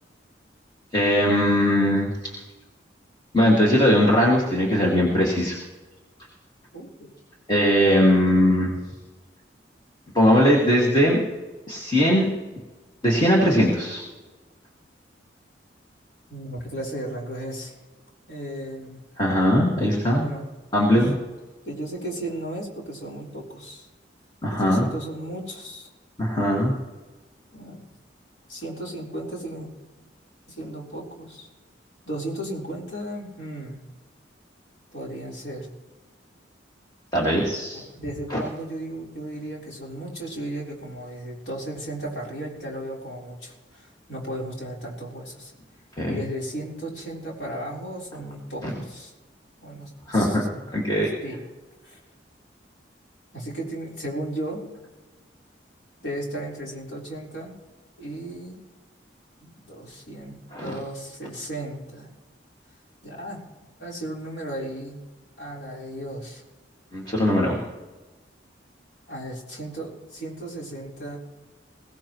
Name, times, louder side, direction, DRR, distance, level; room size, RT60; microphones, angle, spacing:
voice 1, 0.9-2.3 3.3-5.6 7.5-8.8 10.1-11.2 11.7-12.3 13.0-14.0 19.2-20.3 20.7-21.2 24.4-24.8 26.2-26.8 37.1-37.8 38.3-38.4 46.0-46.2 48.6-48.7 50.1-50.4 50.7-51.1 60.5-60.8 66.9-67.6, equal, 25° left, -3 dB, 2.1 m, -20 dB
voice 2, 6.7-7.1 16.3-17.7 18.3-19.0 20.2-20.5 20.9-21.0 21.6-23.9 24.5-25.9 27.5-27.8 28.5-29.7 30.5-31.5 32.0-33.8 34.9-35.7 37.7-45.5 46.1-49.1 49.6-50.6 51.2-51.4 51.8-52.0 53.3-54.7 56.0-57.5 58.0-58.6 59.4-62.1 63.0-63.4 63.8-65.0 65.4-66.4 69.1-71.2, right 1 dB, 60° left, -3 dB, 4.1 m, -35 dB
22.0 x 17.0 x 3.1 m, 1.2 s
head